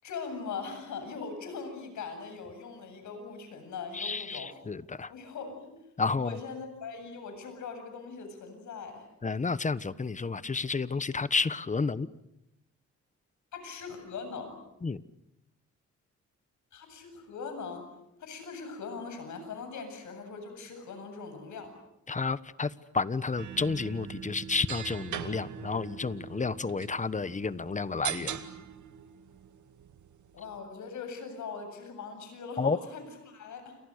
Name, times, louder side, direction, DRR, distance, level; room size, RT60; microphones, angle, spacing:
voice 1, 0.0-4.5 5.1-5.7 6.2-9.1 13.5-14.6 16.7-17.9 18.2-21.8 30.3-33.8, left 5 dB, 80° left, 7 dB, 8.0 m, -41 dB
voice 2, 3.9-5.1 6.0-6.4 9.2-12.1 14.8-15.0 22.1-28.4 32.6-32.8, left 4 dB, 25° left, 16 dB, 1.2 m, -31 dB
sound 1, 23.4-30.6, right 9 dB, 85° right, 2.1 m, -41 dB
29.5 x 29.0 x 6.6 m, 0.86 s
cardioid pair, 100°, 29 cm